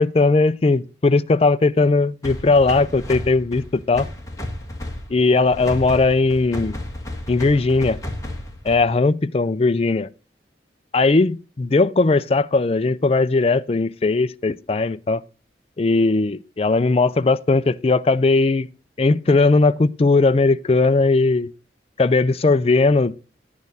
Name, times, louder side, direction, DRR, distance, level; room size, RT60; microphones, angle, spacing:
voice 1, 0.0-4.1 5.1-6.8 7.3-8.0 8.6-10.1 10.9-15.2 15.8-18.7 19.0-21.5 22.0-23.1, left 3 dB, 35° left, 0.4 m, -18 dB
sound 1, 2.2-9.0, left 1 dB, 20° left, 1.7 m, -33 dB
10.5 x 8.6 x 4.1 m
head